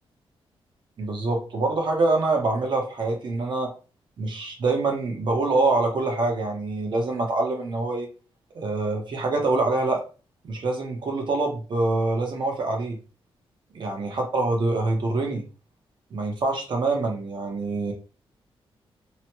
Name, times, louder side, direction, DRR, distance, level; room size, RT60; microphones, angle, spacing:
voice 1, 1.0-3.7 4.2-8.1 8.5-10.0 10.4-13.0 13.8-15.4 16.1-17.9, right 3 dB, 50° right, 2 dB, 0.9 m, -25 dB
2.9 x 2.2 x 2.9 m, 0.35 s
wide cardioid pair, 120°, 10 cm